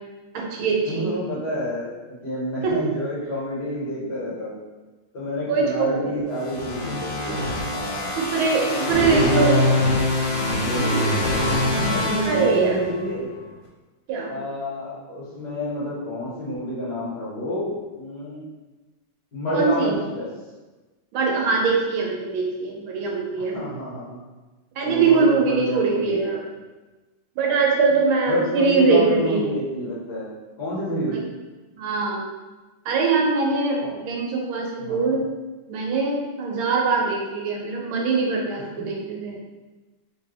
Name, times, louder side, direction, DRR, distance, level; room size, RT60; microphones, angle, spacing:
voice 1, 0.3-1.1 2.6-2.9 5.5-6.4 8.2-9.6 12.3-12.8 14.1-14.3 19.5-20.0 21.1-23.6 24.8-26.5 27.4-29.4 31.1-31.2 31.7-32.2 32.8-35.2 35.7-39.4, right 4 dB, 80° right, -1 dB, 1.5 m, -22 dB
voice 2, 0.9-1.9 2.2-4.6 5.1-7.4 7.7-8.2 8.9-9.9 10.6-11.5 11.8-13.3 14.3-18.4 19.3-20.3 23.4-24.2 24.8-26.4 28.3-30.3 30.6-31.2 33.8-34.0 34.8-35.2 38.6-38.7, equal, 55° left, -9 dB, 1.9 m, -28 dB
sound 1, 6.4-13.1, left 1 dB, 80° left, 1.6 m, -24 dB
3.4 x 3.2 x 3.2 m, 1.2 s
omnidirectional pair, 2.3 m